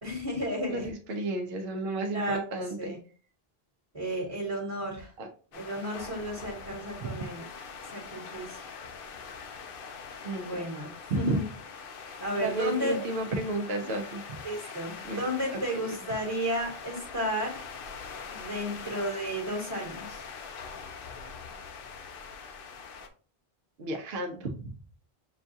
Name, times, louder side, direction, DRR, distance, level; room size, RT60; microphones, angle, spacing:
voice 1, 0.0-0.9 2.1-3.0 3.9-5.1 5.5-7.4 7.8-8.7 10.4-11.5 12.2-13.0 13.8-13.9 14.4-17.7 18.3-20.3, equal, 35° right, -1 dB, 1.3 m, -33 dB
voice 2, 0.7-2.9 5.2-5.3 7.0-7.2 10.2-10.7 11.1-11.4 12.1-14.7 15.0-15.2 15.5-15.8 23.8-24.7, right 2 dB, 75° right, 2 dB, 0.9 m, -33 dB
sound 1, 5.5-23.1, left 5 dB, 65° left, 0.8 m, -43 dB
6.6 x 2.3 x 2.7 m, 0.39 s
omnidirectional pair, 1.0 m